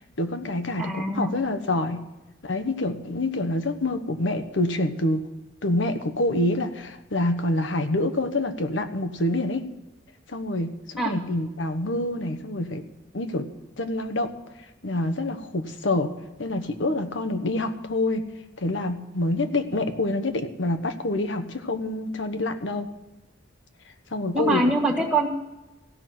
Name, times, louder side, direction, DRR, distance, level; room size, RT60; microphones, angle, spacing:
voice 1, 0.0-2.0 2.4-5.3 5.6-9.6 10.3-12.8 13.1-13.5 13.8-14.3 14.8-18.2 18.6-22.9 24.1-24.6 25.0-25.1, left 2 dB, 75° left, 9 dB, 1.2 m, -27 dB
voice 2, 0.8-1.4 11.0-11.1 24.3-25.3, right 2 dB, 10° right, -1 dB, 1.8 m, -24 dB
16.0 x 6.1 x 9.3 m, 1.0 s
head